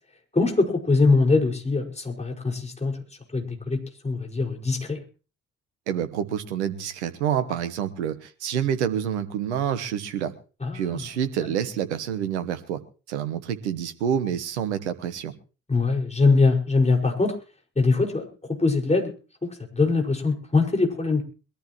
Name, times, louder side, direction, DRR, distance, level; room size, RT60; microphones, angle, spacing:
voice 1, 0.3-3.0 3.3-5.0 10.6-11.0 11.4-11.5 15.7-17.3 17.8-19.1 19.4-21.2, left 3 dB, 20° left, 1 dB, 5.2 m, -22 dB
voice 2, 5.9-10.3 10.7-12.8 13.1-15.3, right 9 dB, 80° right, 11 dB, 1.1 m, -28 dB
22.0 x 14.0 x 3.0 m, 0.35 s
figure-of-eight pair, 40°, 34 cm